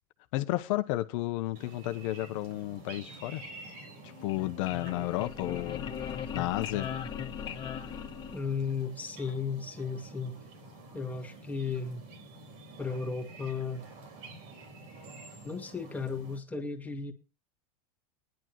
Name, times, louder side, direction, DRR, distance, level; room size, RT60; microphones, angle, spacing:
voice 1, 0.3-3.4 4.2-5.9 6.3-6.9, left 17 dB, 65° left, 0.9 m, -32 dB
sound 1, 1.5-16.4, right 2 dB, 65° right, 4.1 m, -49 dB
sound 2, 4.1-8.8, left 8 dB, 25° left, 1.8 m, -38 dB
voice 2, 8.3-10.4 10.9-12.0 12.8-13.8 15.4-17.1, left 5 dB, 10° left, 1.8 m, -35 dB
19.0 x 10.5 x 3.0 m
supercardioid pair, 125°, 18 cm